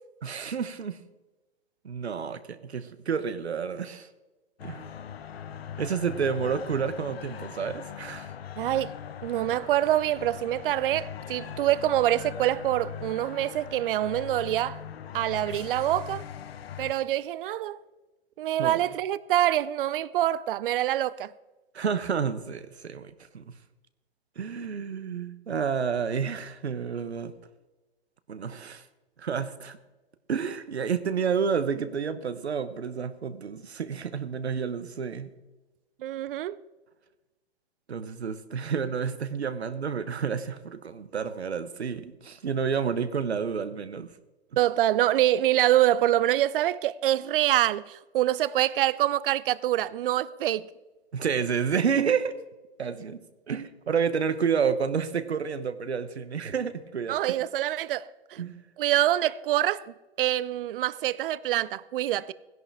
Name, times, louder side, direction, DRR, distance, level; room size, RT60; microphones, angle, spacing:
voice 1, 0.2-1.0 1.8-4.1 4.6-5.0 5.8-8.3 18.6-18.8 21.7-23.5 24.4-27.3 28.3-28.8 29.2-29.8 30.3-35.3 37.9-44.1 51.1-52.4 52.8-57.2 58.4-58.6, right 6 dB, 85° right, 1.1 m, -30 dB
sound 1, 4.6-16.9, left 9 dB, 70° left, 1.0 m, -40 dB
voice 2, 8.6-8.9 9.2-14.8 15.1-16.2 16.8-17.8 18.4-21.3 36.0-36.6 44.6-50.7 57.1-58.4 58.8-59.8 60.2-62.3, right 13 dB, 55° right, 0.6 m, -25 dB
16.5 x 11.0 x 3.5 m
hypercardioid pair, 115°, 32 cm